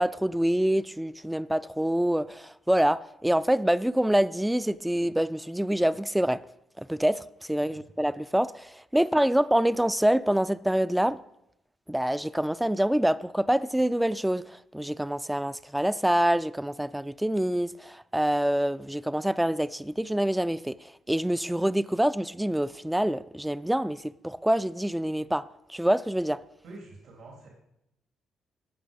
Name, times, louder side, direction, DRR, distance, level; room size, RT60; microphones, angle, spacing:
voice 1, 0.0-6.4 6.8-11.2 11.9-26.4, right 1 dB, 5° right, 0.4 m, -26 dB
voice 2, 26.6-27.5, right 2 dB, 75° right, 3.1 m, -47 dB
16.5 x 6.2 x 5.3 m
cardioid pair, 90°, 0 cm